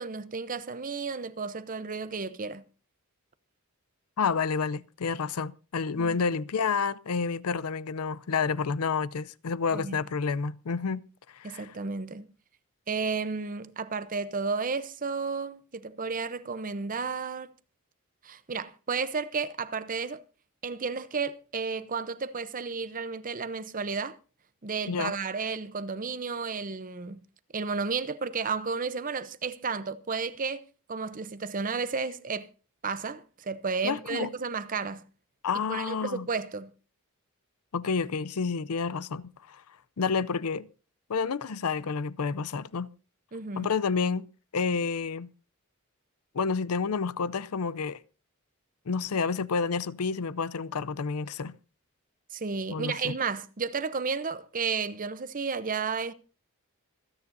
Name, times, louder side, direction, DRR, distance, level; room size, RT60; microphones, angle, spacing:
voice 1, 0.0-2.6 6.0-6.2 9.7-10.0 11.4-12.3 12.9-17.5 18.2-20.2 20.6-24.2 24.6-27.2 27.5-30.6 30.9-32.5 32.8-35.0 35.7-36.7 43.3-43.7 52.3-56.1, right 5 dB, 40° right, 0.7 m, -32 dB
voice 2, 4.2-11.0 11.3-11.7 24.9-25.1 33.8-34.3 35.4-36.3 37.7-39.6 40.0-40.7 41.1-42.9 43.6-44.3 44.5-45.3 46.3-48.0 48.9-51.5 52.7-53.2, left 5 dB, 90° left, 0.6 m, -29 dB
26.5 x 9.7 x 2.7 m
head